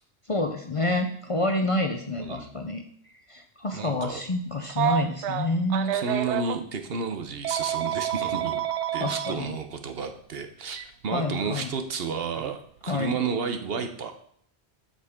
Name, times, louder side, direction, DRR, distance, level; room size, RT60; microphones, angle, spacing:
voice 1, 0.3-2.8 3.3-5.9 9.0-9.5 11.1-11.7 12.9-13.1, left 2 dB, 35° left, 5 dB, 0.6 m, -28 dB
voice 2, 2.2-2.7 3.7-4.2 5.9-8.6 8.9-14.1, right 5 dB, 60° right, 7 dB, 1.0 m, -32 dB
Telephone, 4.7-6.6 7.4-9.3 10.7-10.8 12.4-12.6, right 9 dB, 90° right, 0.9 m, -28 dB
7.5 x 6.9 x 3.6 m, 0.63 s
omnidirectional pair, 1.1 m